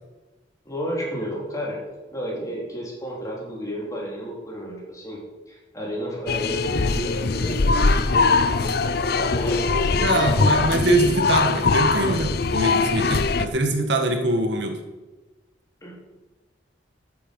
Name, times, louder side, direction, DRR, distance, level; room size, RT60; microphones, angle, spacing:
voice 1, 0.7-1.8 2.1-5.2 5.5-10.8 15.8-16.0, equal, 20° left, -4 dB, 3.8 m, -32 dB
sound 1, 6.3-13.5, left 3 dB, 55° left, 0.6 m, -21 dB
voice 2, 10.0-14.8, right 1 dB, 70° right, 4 dB, 1.6 m, -24 dB
13.5 x 8.7 x 5.4 m, 1.2 s
head